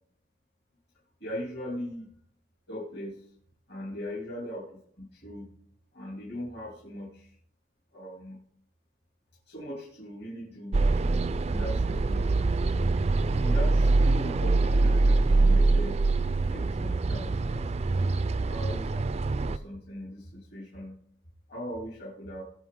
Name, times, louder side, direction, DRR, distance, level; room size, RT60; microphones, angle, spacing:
voice 1, 1.2-2.1 2.7-3.2 3.7-5.5 5.9-7.3 7.9-8.4 9.5-10.7 11.5-12.5 13.3-16.0 16.5-18.1 18.5-20.9 21.5-22.4, equal, 60° left, -4 dB, 2.8 m, -40 dB
sound 1, 10.7-19.6, right 3 dB, 35° right, 0.4 m, -24 dB
18.0 x 6.6 x 3.8 m, 0.63 s
head